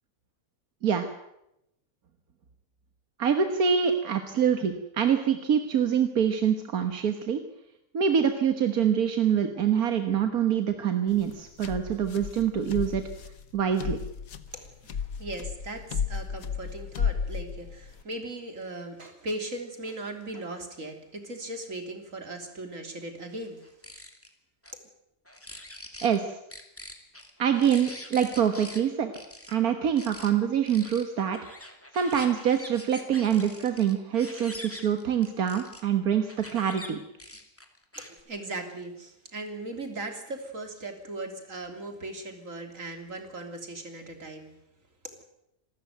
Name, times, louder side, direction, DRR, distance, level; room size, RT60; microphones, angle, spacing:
voice 1, 3.2-7.4 7.9-13.0 13.5-14.0 26.0-26.4 27.4-29.1 29.5-31.4 31.9-37.0, right 8 dB, 90° right, 7 dB, 1.9 m, -25 dB
sound 1, 11.1-18.0, left 6 dB, 75° left, 1.6 m, -34 dB
voice 2, 14.5-23.7 38.0-44.5, right 2 dB, 65° right, 5 dB, 3.7 m, -38 dB
Apostle Birds, 23.6-24.3 24.6-24.7 25.3-26.2 26.5-28.8 29.1-29.5 30.0-30.3 30.7-35.8 36.3-36.9 37.2-38.2, left 1 dB, 10° left, 2.5 m, -44 dB
26.5 x 13.5 x 9.3 m, 0.84 s
omnidirectional pair, 1.5 m